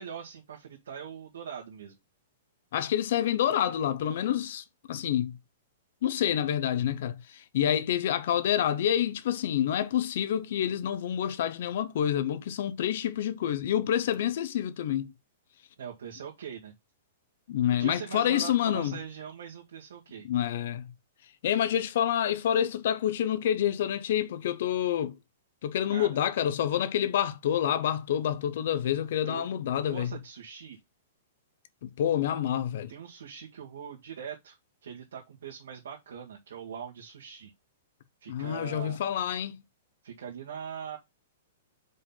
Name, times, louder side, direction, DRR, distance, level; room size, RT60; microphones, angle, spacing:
voice 1, 0.0-1.9 15.8-16.7 17.8-20.3 25.9-26.2 29.2-29.5 29.8-30.8 32.9-34.6 34.8-37.5 38.2-39.0 40.0-41.0, right 7 dB, 85° right, 1.8 m, -41 dB
voice 2, 2.7-5.3 6.0-15.1 17.5-19.0 20.3-20.9 21.4-25.1 25.6-30.1 31.8-32.9 38.3-39.6, left 10 dB, 55° left, 0.8 m, -28 dB
5.2 x 4.1 x 5.6 m
hypercardioid pair, 170°, 0 cm